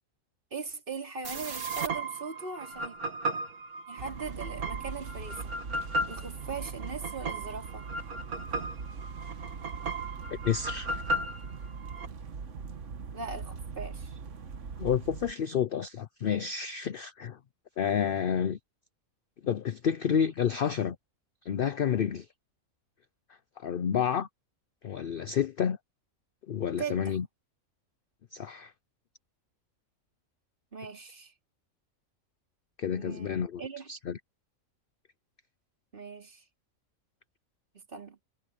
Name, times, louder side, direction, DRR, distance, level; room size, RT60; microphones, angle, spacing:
voice 1, 0.5-3.0 3.9-7.9 13.1-14.2 26.8-27.2 30.7-31.3 32.9-33.9 35.9-36.4 37.9-38.2, right 5 dB, 35° right, 3.8 m, -40 dB
sound 1, 1.2-12.1, right 1 dB, 85° right, 2.5 m, -36 dB
sound 2, 4.0-15.3, right 5 dB, 60° right, 1.5 m, -41 dB
voice 2, 10.4-10.9 14.8-17.4 17.8-18.6 19.4-21.0 21.4-22.3 23.6-24.3 24.8-25.8 26.5-27.3 28.3-28.7 32.8-33.6 33.9-34.2, left 8 dB, 55° left, 0.6 m, -29 dB
omnidirectional pair, 1.5 m